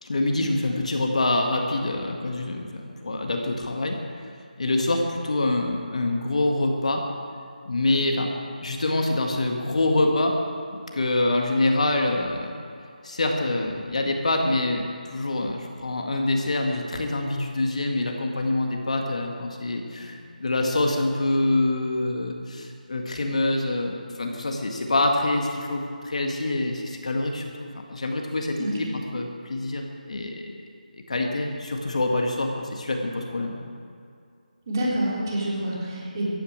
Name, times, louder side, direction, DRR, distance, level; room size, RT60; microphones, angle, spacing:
voice 1, 0.0-4.0 4.6-7.0 7.7-8.3 8.6-10.4 10.9-12.5 13.0-30.5 30.9-33.7, left 2 dB, 50° left, 2 dB, 1.8 m, -25 dB
voice 2, 34.7-36.3, right 1 dB, 25° right, -5 dB, 3.2 m, -27 dB
15.0 x 9.7 x 8.8 m, 2.4 s
figure-of-eight pair, 175°, 5 cm